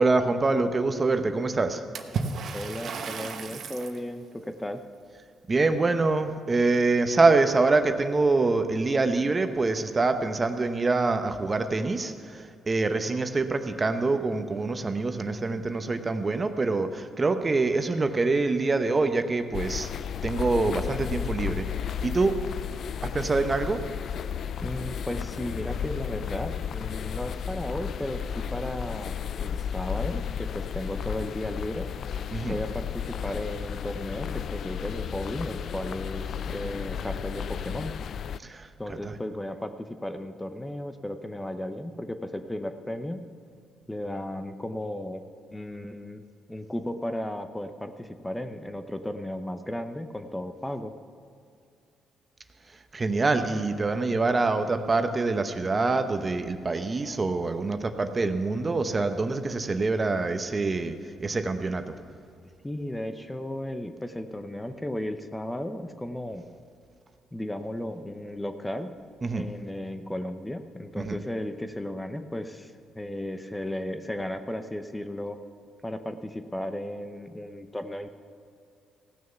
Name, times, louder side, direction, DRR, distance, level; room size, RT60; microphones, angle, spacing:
voice 1, 0.0-1.8 5.5-19.9 20.2-21.7 22.0-22.3 23.0-23.8 32.3-32.6 38.4-38.7 39.0-39.1 52.9-61.9 69.2-69.5 71.0-71.2, right 3 dB, 30° right, 8 dB, 0.8 m, -25 dB
Water / Splash splatter, 1.9-4.0, right 5 dB, 60° right, 1.0 m, -33 dB
voice 2, 2.5-4.8 24.6-31.9 32.4-37.9 38.8-43.2 43.9-45.2 45.5-46.2 46.5-50.9 62.6-66.4 67.3-68.9 69.3-75.4 75.8-78.1, left 1 dB, 10° left, 8 dB, 0.7 m, -35 dB
sound 1, 19.5-38.4, left 8 dB, 60° left, 0.3 m, -33 dB
16.5 x 6.4 x 6.9 m, 2.4 s
cardioid pair, 90°, 0 cm